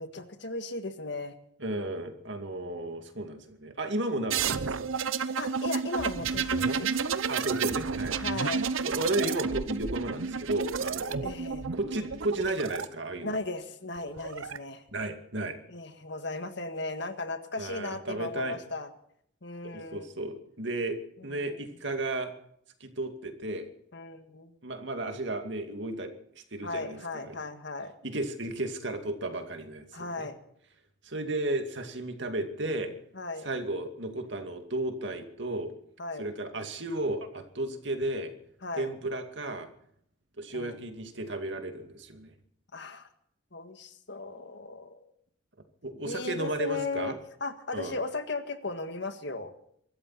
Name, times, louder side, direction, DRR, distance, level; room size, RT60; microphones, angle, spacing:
voice 1, 0.0-1.3 5.4-6.9 8.2-8.7 11.2-11.7 13.2-14.8 15.7-18.9 19.4-20.1 21.2-21.6 23.9-24.5 26.6-27.9 29.9-30.4 33.1-33.5 36.0-36.3 38.6-38.9 40.5-40.8 42.7-43.1 43.5-45.1 46.0-47.1 47.4-49.5, left 3 dB, 60° left, 8 dB, 1.8 m, -36 dB
voice 2, 1.6-4.9 7.3-8.6 8.9-11.3 11.7-13.3 14.9-15.6 17.6-18.6 19.7-22.3 22.8-23.7 24.6-27.4 28.0-30.3 31.0-32.9 33.4-35.7 36.2-38.3 38.8-39.7 40.4-42.3 45.8-47.2 47.7-48.0, right 2 dB, 60° right, 6 dB, 2.4 m, -34 dB
sound 1, 4.3-12.8 14.0-14.6, right 5 dB, 85° right, 0.8 m, -31 dB
24.5 x 14.0 x 4.3 m, 0.68 s
head